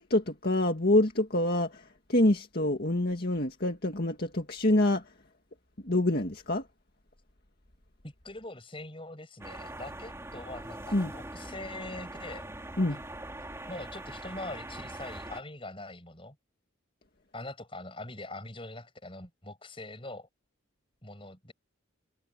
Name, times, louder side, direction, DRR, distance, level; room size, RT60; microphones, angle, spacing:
voice 1, 0.0-1.8 2.1-5.0 5.8-6.6 10.9-11.1 12.8-13.0, left 1 dB, 50° left, 2.0 m, -26 dB
voice 2, 8.0-12.5 12.9-13.0 13.7-16.4 17.3-20.3 21.0-21.5, left 2 dB, 25° left, 6.4 m, -43 dB
sound 1, 9.4-15.4, right 1 dB, 15° right, 3.2 m, -42 dB
head